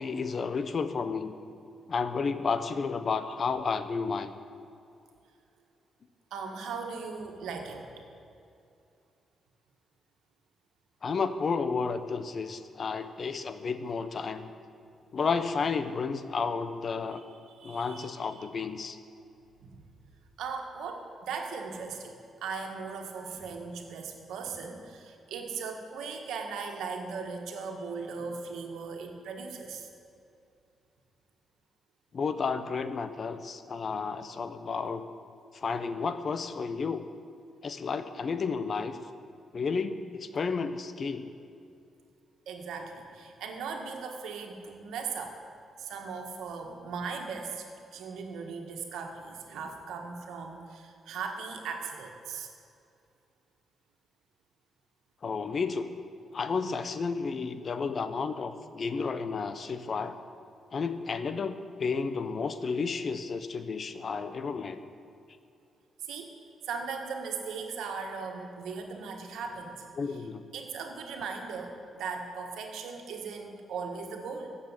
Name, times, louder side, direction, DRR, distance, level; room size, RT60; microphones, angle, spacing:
voice 1, 0.0-1.3 1.9-4.3 11.0-14.5 15.1-17.2 17.6-19.0 32.1-35.0 35.5-37.1 37.6-39.0 39.5-41.3 55.2-55.9 56.3-60.1 60.7-64.8 70.0-70.5, left 5 dB, 55° left, 11 dB, 1.0 m, -32 dB
voice 2, 6.3-8.0 17.5-18.5 19.6-19.8 20.4-29.9 42.5-45.4 45.8-52.5 66.0-66.3 66.6-69.8 70.5-74.5, right 5 dB, 80° right, 4 dB, 1.6 m, -38 dB
15.0 x 7.1 x 9.8 m, 2.6 s
supercardioid pair, 50°, 0 cm